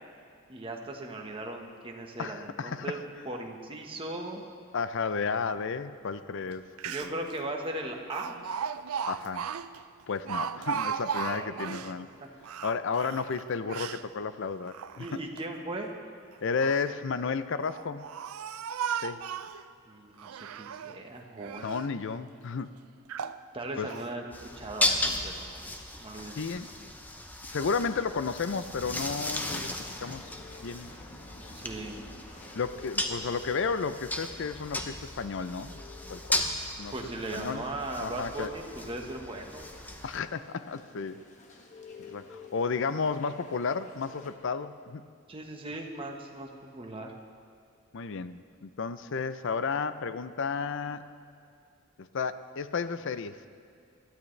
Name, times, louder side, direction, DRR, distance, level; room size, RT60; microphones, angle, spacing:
voice 1, 0.5-3.0 3.2-4.4 6.8-8.4 11.2-11.6 15.0-15.9 19.9-21.7 23.5-25.7 26.0-26.4 26.8-26.9 31.6-32.0 36.9-39.7 45.3-47.1, right 2 dB, 25° right, 1 dB, 1.3 m, -38 dB
voice 2, 2.2-3.0 4.7-7.3 9.1-9.4 10.1-12.1 12.6-15.2 16.4-18.1 18.9-19.2 21.6-22.7 23.8-23.9 26.4-26.7 27.5-30.9 32.5-35.8 36.1-36.5 36.8-36.9 37.3-37.7 38.0-38.5 40.0-41.2 42.1-45.0 47.9-51.1 52.0-53.4, left 5 dB, 60° left, 13 dB, 0.5 m, -33 dB
Speech, 6.5-6.6 6.8-7.3 8.1-11.9 12.4-14.0 14.6-15.4 16.3-16.9 17.6-19.6 20.2-21.0 21.4-21.9 22.5-22.6 23.1-23.4 23.9-24.1, right 7 dB, 85° right, 0.4 m, -36 dB
sound 1, 24.3-40.2, left 1 dB, 10° left, 0.7 m, -36 dB
sound 2, 28.8-44.3, left 3 dB, 35° left, 1.2 m, -51 dB
20.5 x 13.0 x 3.3 m, 2.4 s
head